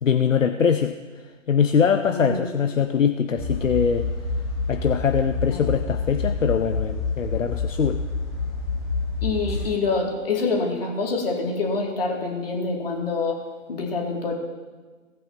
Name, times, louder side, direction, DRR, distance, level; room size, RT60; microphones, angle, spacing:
voice 1, 0.0-0.9 1.5-4.1 4.7-8.0, left 7 dB, 75° left, 8 dB, 0.7 m, -22 dB
voice 2, 2.0-2.5 5.5-5.7 9.2-13.4 13.7-14.3, left 3 dB, 45° left, 0 dB, 2.6 m, -26 dB
sound 1, 3.4-9.7, left 3 dB, ahead, 0.7 m, -28 dB
18.0 x 8.6 x 2.9 m, 1.3 s
figure-of-eight pair, 140°, 39 cm